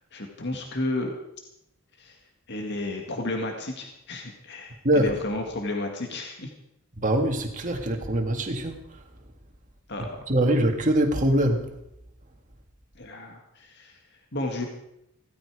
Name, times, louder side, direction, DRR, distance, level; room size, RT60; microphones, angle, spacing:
voice 1, 0.1-1.2 2.0-2.2 2.5-6.5 9.9-10.2 13.0-14.0 14.3-14.7, left 2 dB, 55° left, 3 dB, 1.9 m, -32 dB
voice 2, 4.8-5.2 7.0-8.8 10.3-11.7, right 1 dB, 35° right, 3 dB, 2.1 m, -23 dB
16.5 x 14.5 x 4.9 m, 0.82 s
head